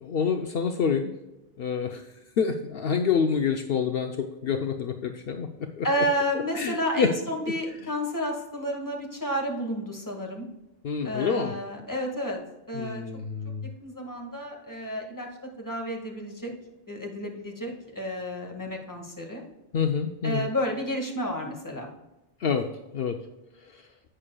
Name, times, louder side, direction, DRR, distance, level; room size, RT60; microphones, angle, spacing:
voice 1, 0.0-1.1 1.6-2.0 2.4-5.9 6.5-7.1 10.8-11.5 12.7-13.7 19.7-20.5 22.4-22.7 22.9-23.2, left 6 dB, 65° left, 6 dB, 0.9 m, -27 dB
voice 2, 5.8-10.5 11.0-12.4 12.7-13.0 13.8-15.3 15.6-16.5 16.9-19.4 20.2-21.9, equal, 20° left, 0 dB, 1.7 m, -31 dB
11.5 x 8.7 x 2.3 m, 0.98 s
omnidirectional pair, 1.1 m